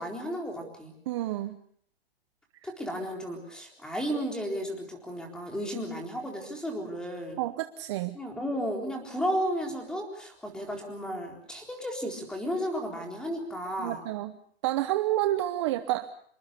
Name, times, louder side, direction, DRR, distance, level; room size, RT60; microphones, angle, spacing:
voice 1, 0.0-0.9 2.6-7.4 8.1-14.0, equal, ahead, 2 dB, 4.0 m, -33 dB
voice 2, 1.1-1.6 2.6-2.7 7.4-8.2 13.8-14.4 14.6-16.1, right 15 dB, 30° right, 10 dB, 0.9 m, -29 dB
27.0 x 22.5 x 6.8 m, 0.63 s
hypercardioid pair, 165°, 30 cm